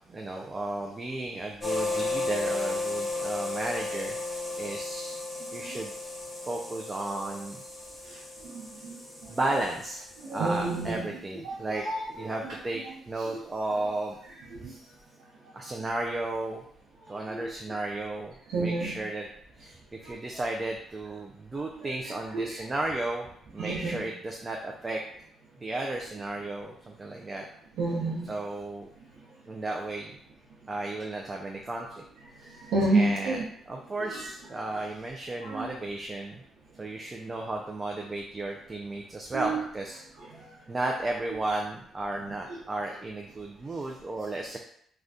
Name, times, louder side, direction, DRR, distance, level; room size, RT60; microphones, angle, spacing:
voice 1, 0.1-7.9 9.3-14.2 14.6-14.8 15.5-16.6 17.1-19.3 19.6-19.8 20.0-23.3 23.5-25.0 25.6-27.5 28.2-28.9 29.5-30.1 30.7-32.0 32.9-36.4 36.8-40.0 40.7-44.6, right 2 dB, 25° right, 1 dB, 0.3 m, -34 dB
sound 1, 1.6-10.9, left 2 dB, 10° left, 0.9 m, -34 dB
voice 2, 8.0-9.6 10.2-13.4 13.7-13.8 14.2-14.7 15.4-15.9 17.0-17.5 18.5-19.0 19.6-19.7 20.0-20.5 21.8-23.0 23.6-24.1 27.7-28.3 32.2-33.4 33.9-34.8 35.4-35.7 39.3-39.6 40.2-40.5 42.5-42.6, right 2 dB, 80° right, -6 dB, 0.7 m, -32 dB
2.5 x 2.2 x 3.4 m, 0.68 s
cardioid pair, 90°, 0 cm